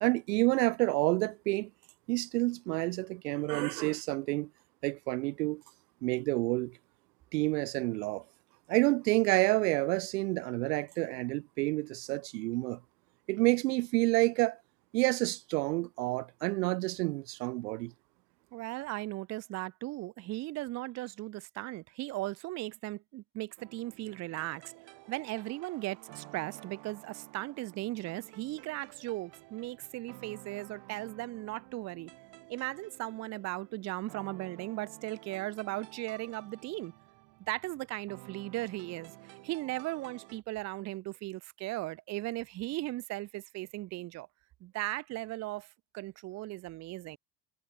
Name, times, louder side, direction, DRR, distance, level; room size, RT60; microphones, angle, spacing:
voice 1, 0.0-1.7 2.1-4.5 4.8-5.6 6.0-6.8 7.3-8.2 8.7-12.8 13.3-14.6 14.9-17.9, right 22 dB, 85° right, 0.8 m, -29 dB
voice 2, 18.5-24.6 25.1-32.1 32.5-36.9 37.5-44.3 44.6-47.2, right 18 dB, 35° right, 0.4 m, -37 dB
sound 1, 23.6-40.4, right 24 dB, 65° right, 2.6 m, -53 dB
supercardioid pair, 90°, 47 cm